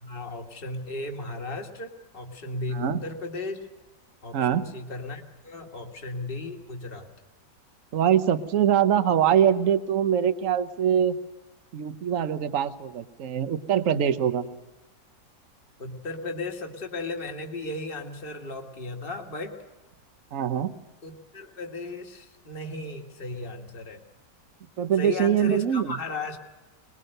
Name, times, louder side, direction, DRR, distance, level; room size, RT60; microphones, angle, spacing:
voice 1, 0.0-3.7 4.2-7.1 15.8-19.6 21.0-24.0 25.0-26.4, left 2 dB, 30° left, 3 dB, 1.9 m, -35 dB
voice 2, 4.3-4.6 7.9-11.2 11.7-14.5 20.3-20.7 24.8-25.9, right 9 dB, 55° right, 11 dB, 1.2 m, -23 dB
22.5 x 21.0 x 6.6 m, 1.2 s
omnidirectional pair, 1.8 m